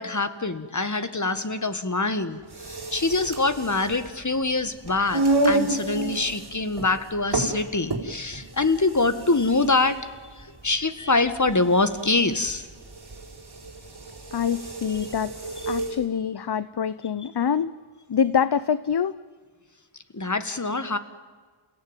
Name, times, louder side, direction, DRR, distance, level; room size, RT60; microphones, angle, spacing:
voice 1, 0.0-12.7 14.9-15.0 20.1-21.0, left 3 dB, 35° left, 11 dB, 1.8 m, -25 dB
sound 1, 2.4-16.0, right 2 dB, 50° right, 4.4 m, -30 dB
voice 2, 14.3-17.7 18.1-19.2, left 7 dB, 50° left, 16 dB, 0.8 m, -25 dB
29.5 x 17.0 x 9.2 m, 1.5 s
wide cardioid pair, 60°, 50 cm